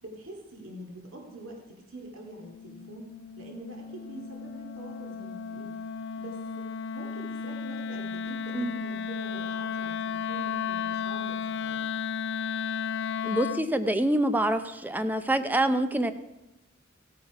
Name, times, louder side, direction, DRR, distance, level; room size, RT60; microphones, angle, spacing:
voice 1, 0.0-5.8 6.2-6.7 6.9-11.8, right 1 dB, 80° right, 1 dB, 2.4 m, -45 dB
Wind instrument woodwind instrument, 2.2-13.7, left 6 dB, 60° left, 0.4 m, -34 dB
voice 2, 13.2-16.1, right 1 dB, 10° right, 10 dB, 0.6 m, -26 dB
15.5 x 8.9 x 4.8 m, 0.97 s
head